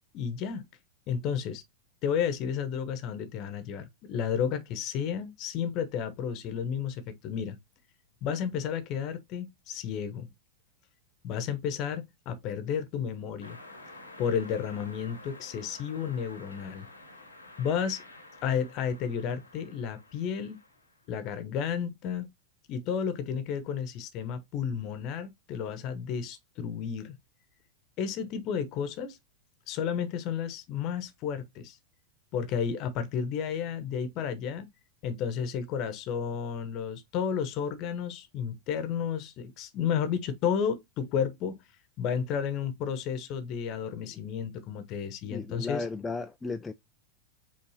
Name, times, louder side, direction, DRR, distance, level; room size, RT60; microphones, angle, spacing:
voice 1, 0.1-0.7 1.1-1.6 2.0-7.6 8.2-10.3 11.2-13.6 14.2-16.9 17.6-18.0 18.4-20.6 21.1-22.3 22.7-27.2 28.0-29.2 29.7-31.8 32.3-34.7 35.0-41.6 42.0-45.8, left 7 dB, 40° left, 0.9 m, -32 dB
sound 1, 13.4-21.0, left 2 dB, 80° left, 1.1 m, -50 dB
voice 2, 45.3-46.7, left 3 dB, 10° left, 0.3 m, -35 dB
5.4 x 3.4 x 2.7 m
figure-of-eight pair, 90°, 0 cm